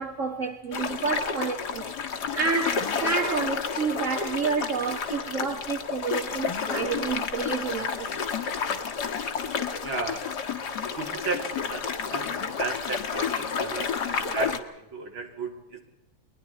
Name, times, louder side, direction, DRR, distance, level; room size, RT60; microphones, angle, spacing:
voice 1, 0.0-2.0 2.3-8.3, right 4 dB, 40° right, 1.6 m, -29 dB
sound 1, 0.7-14.6, left 6 dB, 50° left, 1.8 m, -30 dB
voice 2, 9.8-10.3 10.9-15.8, right 4 dB, 65° right, 3.9 m, -34 dB
30.0 x 22.0 x 4.2 m
omnidirectional pair, 2.4 m